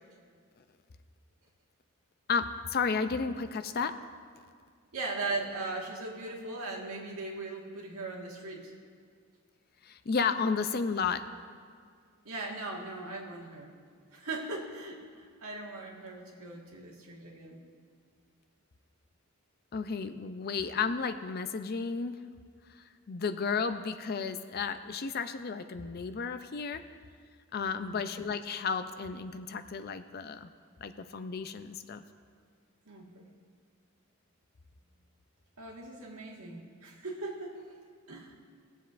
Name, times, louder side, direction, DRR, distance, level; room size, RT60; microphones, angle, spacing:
voice 1, 2.3-4.0 9.8-11.2 19.7-22.2 22.7-26.8 27.5-30.5 30.8-32.0, left 5 dB, 45° left, 10 dB, 0.4 m, -33 dB
voice 2, 4.9-8.7 12.2-13.7 14.1-17.6 27.6-28.0 32.9-33.3 35.6-37.7 38.1-38.4, right 3 dB, 85° right, -1 dB, 1.7 m, -39 dB
20.0 x 7.8 x 2.5 m, 2.1 s
head